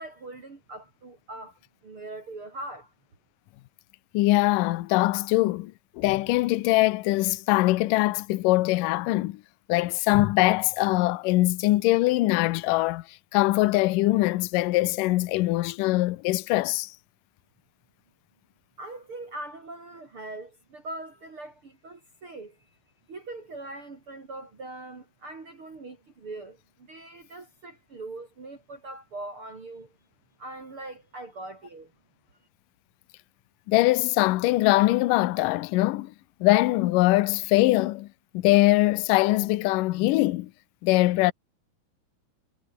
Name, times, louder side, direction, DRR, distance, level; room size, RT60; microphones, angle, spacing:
voice 1, 0.0-2.9 18.8-22.8 23.1-30.0 30.4-31.9, right 2 dB, 35° right, 4.0 m, -41 dB
voice 2, 4.1-9.4 9.7-13.0 13.3-16.9 33.7-36.1 36.4-38.1 38.3-40.5 40.8-41.3, left 18 dB, 75° left, 2.2 m, -22 dB
omnidirectional pair, 4.4 m